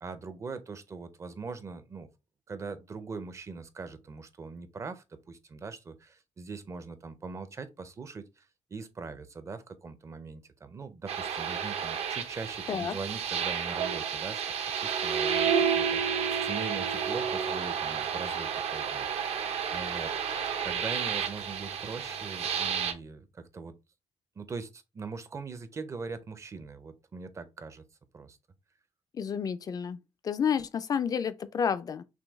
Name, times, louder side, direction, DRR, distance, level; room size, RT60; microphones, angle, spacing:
voice 1, 0.0-2.1 2.5-8.5 8.7-14.4 14.7-19.1 19.7-20.1 20.6-23.8 24.4-27.8 28.1-28.4, right 4 dB, 25° right, 0.5 m, -41 dB
sound 1, 11.1-22.9, right 7 dB, 60° right, 0.7 m, -31 dB
voice 2, 29.1-30.0 30.2-32.0, left 7 dB, 30° left, 0.4 m, -30 dB
6.1 x 2.3 x 3.4 m
cardioid pair, 175°, 12 cm